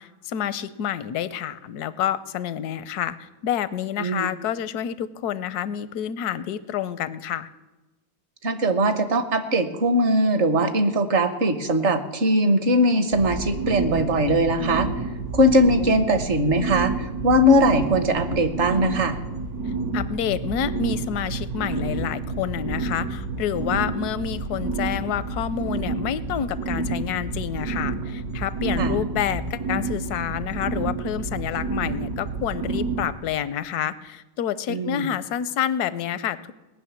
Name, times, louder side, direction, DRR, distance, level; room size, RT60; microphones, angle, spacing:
voice 1, 0.0-7.5 19.9-36.5, left 10 dB, 80° left, 16 dB, 1.2 m, -28 dB
voice 2, 8.4-14.9 15.3-19.2 28.8-29.0 34.7-35.1, equal, 50° right, 10 dB, 1.3 m, -20 dB
sound 1, 13.1-33.1, right 3 dB, 70° right, 1.5 m, -29 dB
18.5 x 6.4 x 9.3 m, 1.1 s
omnidirectional pair, 1.6 m